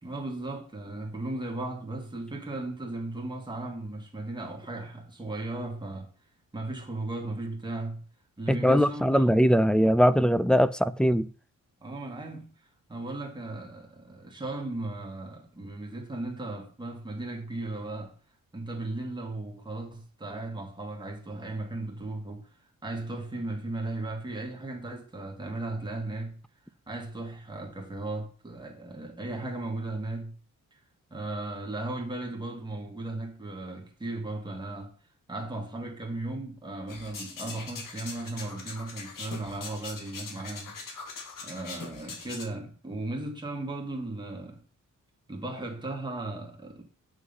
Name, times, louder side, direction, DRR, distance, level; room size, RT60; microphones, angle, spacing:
voice 1, 0.0-6.1 6.5-8.1 8.4-9.2 11.8-12.5 12.9-18.2 18.5-22.5 22.8-26.4 26.9-30.4 30.7-30.8 31.1-34.9 35.3-40.8 41.4-44.6 45.3-46.8, right 2 dB, 15° right, 2.1 m, -36 dB
voice 2, 8.5-11.3, equal, 5° left, 0.3 m, -21 dB
sound 1, 36.9-42.4, left 4 dB, 75° left, 2.2 m, -42 dB
7.7 x 6.2 x 5.6 m
wide cardioid pair, 165°, 33 cm